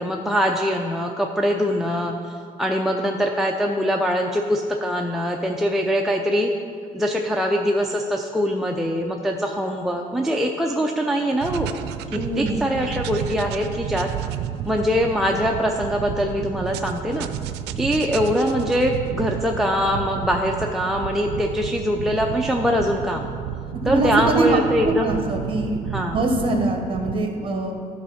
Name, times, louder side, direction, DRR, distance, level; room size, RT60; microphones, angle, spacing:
voice 1, 0.0-6.5 6.9-11.7 12.1-14.1 14.7-17.3 17.8-23.3 23.9-25.2 25.9-26.2, equal, ahead, 1 dB, 0.4 m, -23 dB
sound 1, 11.4-27.2, right 10 dB, 80° right, 0.4 m, -31 dB
voice 2, 12.1-12.7 23.8-27.8, right 2 dB, 30° right, 3 dB, 1.4 m, -23 dB
12.0 x 4.2 x 5.5 m, 2.3 s
cardioid pair, 110°, 17 cm